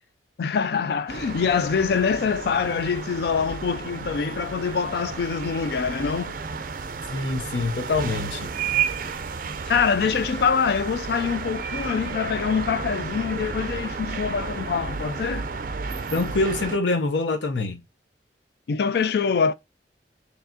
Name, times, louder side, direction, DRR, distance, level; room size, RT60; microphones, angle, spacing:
voice 1, 0.4-6.4 9.7-15.5 18.7-19.5, left 6 dB, 60° left, 0.3 m, -24 dB
sound 1, 1.1-16.8, right 5 dB, 50° right, 0.4 m, -32 dB
voice 2, 7.1-8.5 16.1-17.8, left 3 dB, 85° left, 0.8 m, -25 dB
4.6 x 3.4 x 2.7 m
head